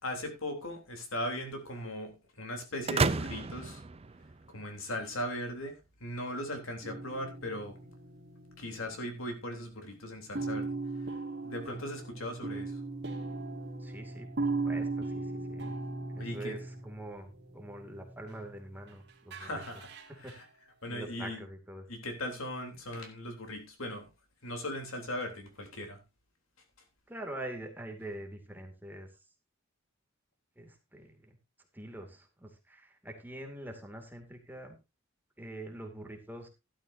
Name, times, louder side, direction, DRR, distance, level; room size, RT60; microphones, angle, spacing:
voice 1, 0.0-3.8 4.5-5.7 6.0-7.7 8.6-10.7 11.4-12.8 16.2-16.6 19.4-19.9 20.2-20.4 20.8-21.4 21.9-24.1 24.4-26.0, left 1 dB, 75° left, 5 dB, 3.4 m, -38 dB
sound 1, 2.9-4.8, right 4 dB, 30° right, 0.6 m, -32 dB
sound 2, 6.8-9.3 9.6-9.9 10.3-18.9 19.3-20.3, right 3 dB, 55° right, 2.6 m, -38 dB
voice 2, 13.8-15.7 16.1-19.6 20.1-20.4 20.9-21.9 27.1-29.1 30.6-31.4 31.7-34.8 35.4-36.5, right 1 dB, 10° right, 3 dB, 2.4 m, -45 dB
13.0 x 12.5 x 2.7 m, 0.25 s
head